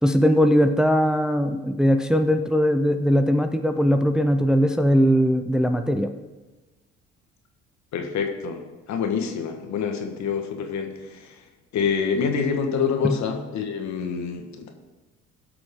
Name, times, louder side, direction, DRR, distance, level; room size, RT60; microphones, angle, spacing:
voice 1, 0.0-6.1 13.0-13.2, equal, ahead, 7 dB, 0.6 m, -20 dB
voice 2, 7.9-8.6 8.9-11.3 11.7-14.7, left 6 dB, 65° left, 4 dB, 1.6 m, -26 dB
16.0 x 6.1 x 3.7 m, 1.2 s
supercardioid pair, 65°, 31 cm